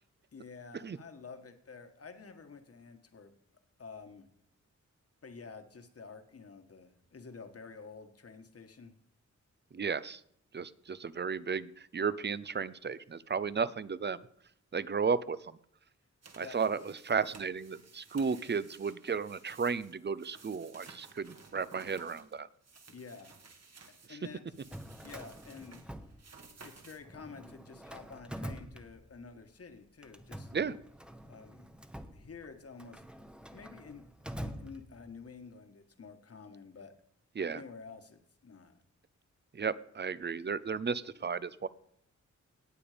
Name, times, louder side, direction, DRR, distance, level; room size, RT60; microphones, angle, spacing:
voice 1, 0.3-3.3 3.8-4.3 5.2-8.9 16.4-16.6 22.9-23.3 24.1-24.5 25.0-25.8 26.6-30.5 31.2-31.7 32.1-33.0 33.5-34.1 34.4-36.9 37.4-38.8, left 5 dB, 50° left, 7 dB, 1.6 m, -50 dB
voice 2, 9.7-10.2 10.5-14.2 14.7-15.4 16.4-22.5 24.1-24.2 30.5-30.8 37.4-37.6 39.5-41.7, right 5 dB, 35° right, 17 dB, 0.6 m, -34 dB
sound 1, 16.2-24.1 24.5-27.0, right 4 dB, 60° right, 1.8 m, -56 dB
Drawer open or close, 24.5-26.7 27.0-29.4 30.0-35.3, equal, 5° right, 0.9 m, -46 dB
18.5 x 7.1 x 5.1 m, 0.70 s
wide cardioid pair, 95°, 30 cm